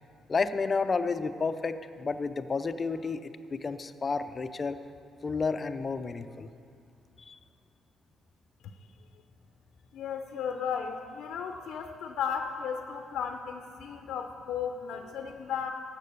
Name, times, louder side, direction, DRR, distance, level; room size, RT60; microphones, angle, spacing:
voice 1, 0.3-4.8 5.2-6.5 7.3-7.4, left 4 dB, 35° left, 11 dB, 0.5 m, -31 dB
voice 2, 9.9-15.7, left 7 dB, 80° left, 6 dB, 0.6 m, -35 dB
12.5 x 7.5 x 6.7 m, 2.4 s
cardioid pair, 90°, 0 cm